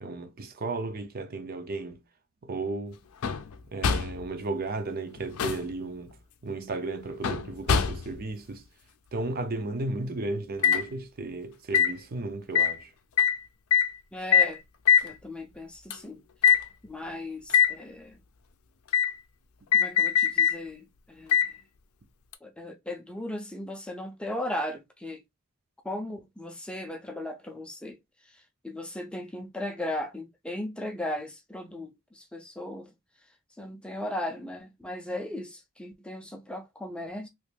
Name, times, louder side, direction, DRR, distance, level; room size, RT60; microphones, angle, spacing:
voice 1, 0.0-2.0 2.4-3.0 3.7-6.1 6.4-8.6 9.1-12.9, right 2 dB, 45° right, 0.5 m, -34 dB
sound 1, 3.2-3.5 3.8-4.2 5.2-5.7 7.2-8.2 10.6-10.8 11.7-11.9 12.6-12.8 13.2-13.4 13.7-13.9 14.3-14.6 14.9-15.1 15.9-16.0 16.4-16.6 17.5-17.7 18.9-19.1 19.7-20.6 21.3-21.5 22.3-22.4, left 7 dB, 80° left, 0.5 m, -22 dB
voice 2, 14.1-14.6 15.0-16.2 16.8-18.2 19.7-21.5 22.4-25.2 25.8-28.0 28.3-32.9 33.6-37.3, left 1 dB, 5° left, 0.5 m, -37 dB
3.1 x 2.4 x 3.3 m
head